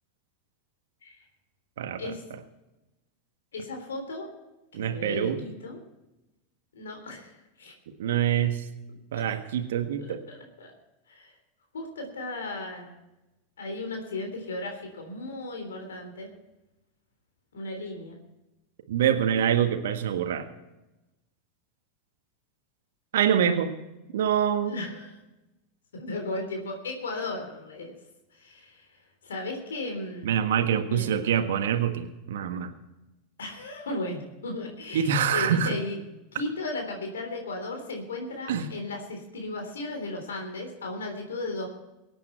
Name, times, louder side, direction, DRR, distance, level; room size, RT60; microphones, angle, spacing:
voice 1, 1.8-2.1 4.7-5.4 8.0-8.6 9.1-10.2 18.9-20.5 23.1-23.7 24.1-24.9 30.2-32.7 34.9-35.8 38.5-38.7, right 8 dB, 65° right, 7 dB, 1.5 m, -25 dB
voice 2, 3.5-4.3 4.7-5.8 6.7-7.7 9.1-9.2 10.0-10.7 11.1-11.3 11.7-13.0 13.6-16.3 17.5-18.2 24.7-25.1 25.9-27.9 28.3-30.3 30.8-31.1 33.4-41.7, left 2 dB, 75° left, 3 dB, 3.5 m, -36 dB
24.0 x 8.9 x 4.4 m, 0.99 s
figure-of-eight pair, 85°, 0 cm